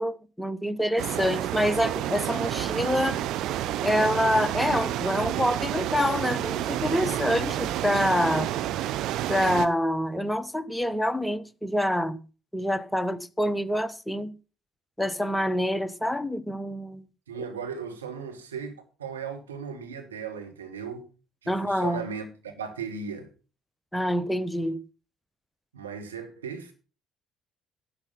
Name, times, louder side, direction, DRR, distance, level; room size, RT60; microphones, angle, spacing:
voice 1, 0.0-3.2 3.8-8.5 9.3-12.2 12.5-14.3 15.0-17.0 21.5-22.0 23.9-24.8, equal, 5° left, 1.0 m, -26 dB
sound 1, 1.0-9.7, right 13 dB, 60° right, 0.7 m, -29 dB
voice 2, 17.3-21.0 21.4-23.3 25.7-26.7, right 6 dB, 85° right, 1.8 m, -37 dB
11.5 x 7.1 x 5.5 m
figure-of-eight pair, 55°, 0 cm